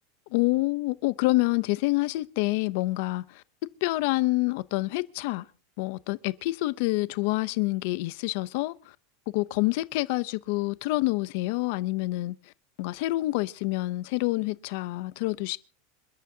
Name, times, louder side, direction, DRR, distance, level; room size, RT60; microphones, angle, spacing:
voice 1, 0.3-3.4 3.8-5.4 5.8-8.7 9.3-12.4 12.8-15.6, left 20 dB, 50° left, 0.6 m, -27 dB
27.0 x 12.0 x 2.8 m
supercardioid pair, 175°, 0 cm